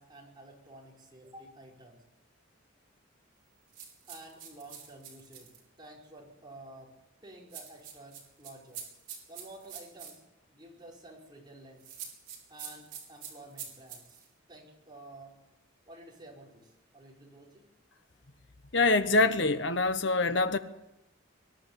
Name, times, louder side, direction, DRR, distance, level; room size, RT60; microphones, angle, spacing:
voice 1, 0.0-2.0 4.1-6.9 7.2-8.9 9.3-10.2 10.5-11.9 12.5-14.2 14.5-15.4 15.9-17.6, right 1 dB, 20° right, 5.1 m, -51 dB
sound 1, 3.7-5.6 7.5-10.2 11.8-14.3, right 8 dB, 45° right, 5.9 m, -45 dB
voice 2, 18.7-20.6, left 3 dB, 60° left, 1.2 m, -25 dB
24.0 x 11.5 x 9.9 m
head